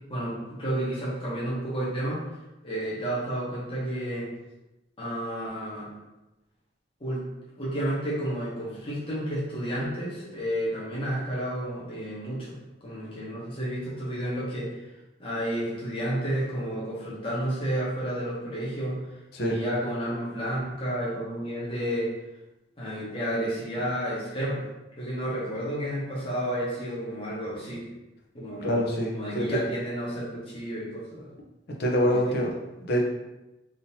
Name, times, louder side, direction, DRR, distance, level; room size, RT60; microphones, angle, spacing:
voice 1, 0.1-2.2 2.6-4.3 5.0-5.9 7.0-7.2 7.6-12.6 12.8-14.7 15.2-19.0 19.4-22.1 22.8-24.6 25.0-27.8 28.3-28.8 29.1-31.3 32.0-32.4, right 1 dB, 30° left, -7 dB, 1.0 m, -31 dB
voice 2, 28.6-29.6 31.8-32.5 32.8-33.0, equal, 55° left, -1 dB, 0.7 m, -25 dB
3.7 x 2.8 x 2.8 m, 0.99 s
head